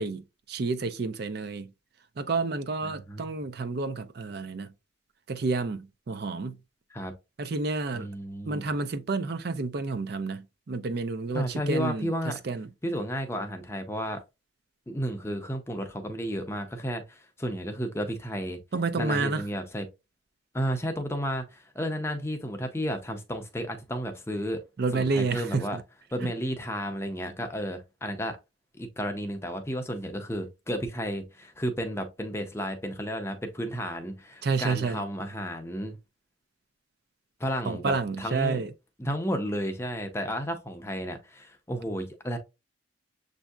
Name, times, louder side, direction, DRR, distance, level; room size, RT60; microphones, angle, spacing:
voice 1, 0.0-1.7 2.2-4.7 5.3-6.6 7.4-8.1 8.4-12.7 18.7-19.4 24.8-25.8 26.2-26.3 34.4-35.0 37.6-38.7, right 4 dB, 50° right, 0.5 m, -30 dB
voice 2, 2.8-3.3 6.9-7.1 7.9-8.7 11.3-12.4 12.8-14.2 14.9-18.6 19.0-19.8 20.5-24.6 24.9-25.8 26.1-28.4 28.7-36.0 37.4-38.6 39.0-42.4, equal, 15° left, 0.5 m, -32 dB
7.1 x 2.6 x 2.3 m
head